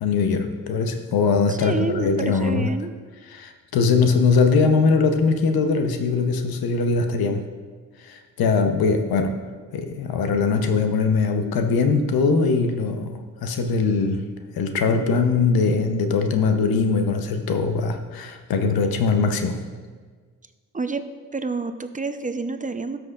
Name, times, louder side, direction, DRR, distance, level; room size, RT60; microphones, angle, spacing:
voice 1, 0.0-2.7 3.3-7.4 8.0-9.4 9.7-19.6, left 4 dB, 80° left, 6 dB, 0.8 m, -21 dB
voice 2, 1.5-2.9 20.7-21.0 21.3-23.0, right 3 dB, 20° right, 9 dB, 0.6 m, -28 dB
12.5 x 6.2 x 2.4 m, 1.5 s
supercardioid pair, 45°, 36 cm